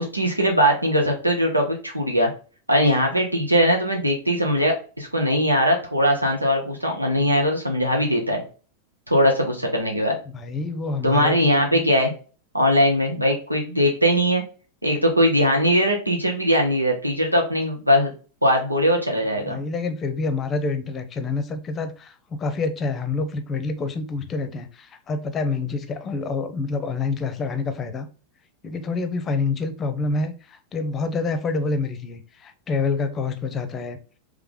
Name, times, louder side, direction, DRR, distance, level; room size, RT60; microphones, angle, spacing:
voice 1, 0.0-2.3 2.7-8.4 9.1-10.2 11.0-12.1 12.5-14.4 14.8-18.1 18.4-19.6, equal, 85° right, 1.0 m, -20 dB
voice 2, 10.3-11.8 19.5-28.1 28.6-34.0, left 4 dB, 25° left, 0.7 m, -27 dB
3.4 x 3.3 x 3.7 m
figure-of-eight pair, 90°, 0 cm